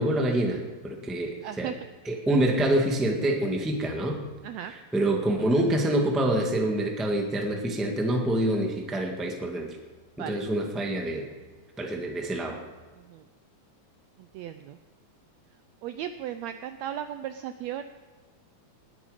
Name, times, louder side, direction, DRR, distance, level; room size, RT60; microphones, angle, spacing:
voice 1, 0.0-1.7 2.0-4.2 4.7-9.8 10.2-11.3 11.8-12.6, right 1 dB, ahead, 1 dB, 0.8 m, -26 dB
voice 2, 1.4-1.7 4.4-4.7 10.2-10.4 13.0-13.2 14.2-14.8 15.8-17.8, right 10 dB, 80° right, 10 dB, 1.6 m, -36 dB
20.0 x 9.2 x 5.0 m, 1.4 s
omnidirectional pair, 3.6 m